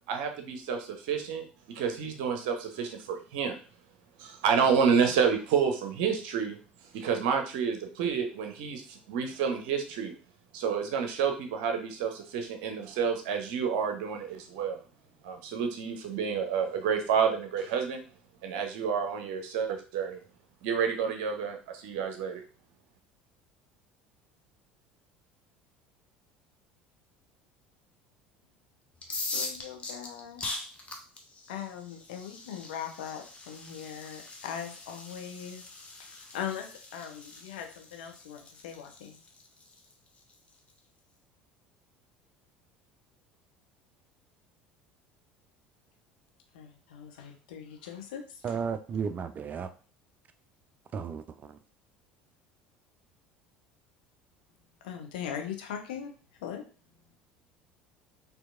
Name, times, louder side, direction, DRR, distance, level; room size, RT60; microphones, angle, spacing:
voice 1, 0.1-1.4 1.7-3.6 4.2-6.6 6.9-10.1 10.5-14.8 15.2-18.0 18.4-20.2 20.6-22.4, right 6 dB, 60° right, 0.7 m, -29 dB
sound 1, 29.0-40.7, left 3 dB, 25° left, 0.8 m, -42 dB
voice 2, 29.1-30.4 31.5-35.7 36.0-36.7 36.9-39.2 46.5-48.6 54.8-56.1 56.4-56.6, left 8 dB, 65° left, 0.7 m, -40 dB
voice 3, 48.4-49.7 50.9-51.6, right 6 dB, 30° right, 0.4 m, -34 dB
4.4 x 2.7 x 2.4 m
figure-of-eight pair, 65°, 5 cm